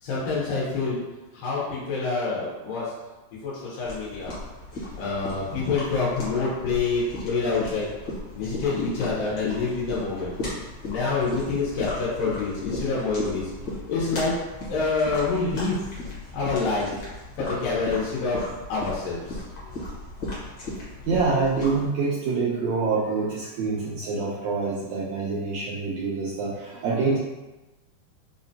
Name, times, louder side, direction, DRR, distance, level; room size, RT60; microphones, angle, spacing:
voice 1, 0.0-1.0 1.3-2.9 3.4-4.3 5.0-7.9 8.3-13.5 13.9-14.3 14.7-15.8 16.3-16.9 17.4-18.4 18.7-19.7, left 4 dB, 90° left, -7 dB, 2.4 m, -27 dB
sound 1, 3.9-21.9, left 1 dB, 65° left, 1.1 m, -36 dB
voice 2, 21.1-27.2, right 4 dB, 90° right, -5 dB, 1.5 m, -26 dB
5.5 x 2.1 x 2.7 m, 1.1 s
omnidirectional pair, 3.7 m